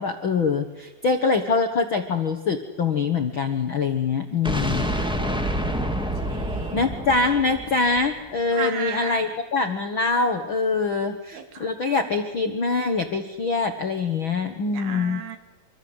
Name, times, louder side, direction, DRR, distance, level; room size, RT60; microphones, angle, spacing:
voice 1, 0.0-4.9 6.7-15.2, left 4 dB, 85° left, 6 dB, 1.1 m, -24 dB
sound 1, 4.4-8.4, equal, 5° right, 0.7 m, -28 dB
voice 2, 6.2-7.0 8.5-9.3 11.3-11.7 14.7-15.4, right 8 dB, 65° right, 8 dB, 4.1 m, -35 dB
26.5 x 25.5 x 8.1 m, 1.1 s
omnidirectional pair, 4.8 m